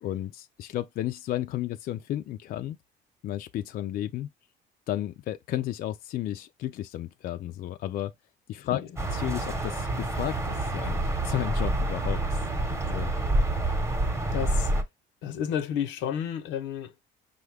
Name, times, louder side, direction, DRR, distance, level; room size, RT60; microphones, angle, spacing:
voice 1, 0.0-2.8 3.2-4.3 4.9-8.1 8.5-12.4 12.8-13.1, left 13 dB, 55° left, 0.4 m, -33 dB
sound 1, 9.0-14.8, right 2 dB, 15° right, 0.9 m, -28 dB
voice 2, 14.3-14.7 15.2-17.0, left 9 dB, 80° left, 0.7 m, -31 dB
5.4 x 2.3 x 3.3 m
cardioid pair, 105°, 19 cm